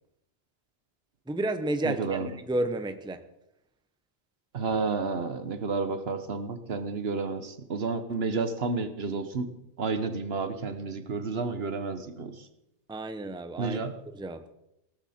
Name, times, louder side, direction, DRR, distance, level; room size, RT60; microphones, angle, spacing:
voice 1, 1.3-3.2 12.9-14.5, right 2 dB, 5° right, 9 dB, 0.7 m, -32 dB
voice 2, 1.8-2.3 4.5-9.5 9.8-12.5 13.6-13.9, right 4 dB, 65° right, 10 dB, 1.3 m, -31 dB
17.0 x 14.0 x 4.3 m, 0.83 s
omnidirectional pair, 1.1 m